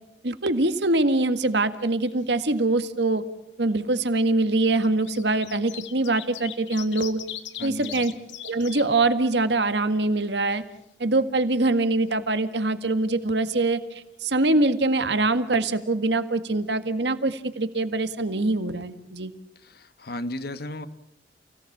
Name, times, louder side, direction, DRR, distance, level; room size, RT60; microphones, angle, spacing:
voice 1, 0.2-3.2 3.6-7.2 7.6-8.1 8.4-10.6 11.0-13.8 14.2-19.3, right 2 dB, 65° right, 11 dB, 1.8 m, -23 dB
sound 1, 1.4-2.1 2.4-2.5 3.6-3.7 4.6-8.8 9.3-9.4 9.7-10.7 14.6-14.7 14.9-15.0, left 11 dB, 85° left, 1.8 m, -40 dB
voice 2, 7.6-8.1 19.5-20.9, left 1 dB, 55° left, 12 dB, 1.4 m, -35 dB
29.5 x 17.5 x 8.5 m, 0.85 s
head